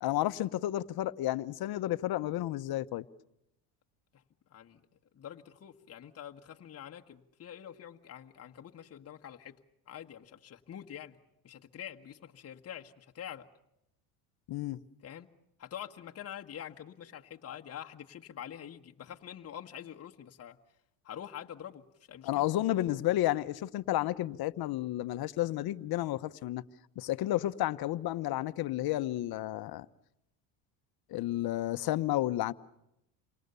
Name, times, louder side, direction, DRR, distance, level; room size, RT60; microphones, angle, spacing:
voice 1, 0.0-3.0 14.5-14.8 22.2-26.6 27.0-29.9 31.1-32.5, left 15 dB, 55° left, 1.1 m, -31 dB
voice 2, 5.1-9.6 9.9-11.2 11.4-13.5 15.0-15.3 15.6-20.6 21.0-22.5, left 10 dB, 30° left, 1.5 m, -46 dB
29.0 x 24.5 x 6.9 m
supercardioid pair, 100°, 45 cm